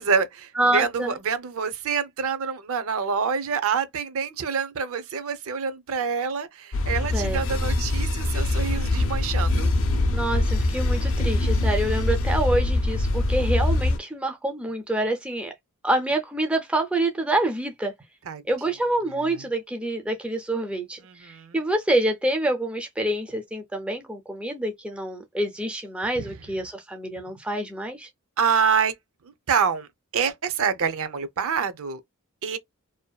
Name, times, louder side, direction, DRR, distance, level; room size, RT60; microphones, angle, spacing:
voice 1, 0.0-9.7 18.3-18.4 19.2-19.4 21.0-21.6 26.2-26.3 28.4-28.9 29.2-32.0 32.4-32.6, right 6 dB, 65° right, 0.5 m, -26 dB
voice 2, 0.6-1.2 7.1-7.4 10.1-15.5 15.8-17.9 18.5-28.1, right 1 dB, 5° right, 0.3 m, -27 dB
sound 1, 6.7-14.0, left 2 dB, 60° left, 0.5 m, -23 dB
2.6 x 2.2 x 2.2 m
head